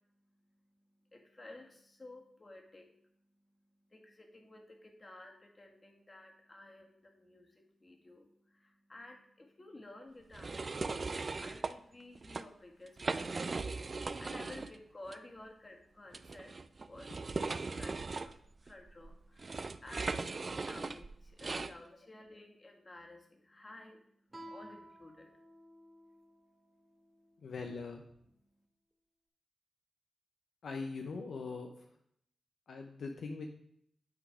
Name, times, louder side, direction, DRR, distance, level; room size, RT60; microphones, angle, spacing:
voice 1, 1.0-2.9 3.9-10.6 11.4-13.6 13.8-17.1 17.5-18.3 18.6-20.2 20.6-24.0 24.4-25.3 26.1-26.2 26.6-26.9 27.1-27.2, left 2 dB, 35° left, 2 dB, 1.8 m, -54 dB
sound 1, 10.3-11.7 12.2-12.4 12.9-14.8 15.1-15.2 16.1-21.7, right 3 dB, 50° right, 0.4 m, -39 dB
Guitar, 24.3-27.6, right 1 dB, 25° right, 2.1 m, -54 dB
voice 2, 27.4-28.0 30.6-32.0 32.7-33.5, left 4 dB, 75° left, 3 dB, 0.6 m, -41 dB
8.7 x 3.9 x 4.9 m, 0.70 s
supercardioid pair, 45°, 0 cm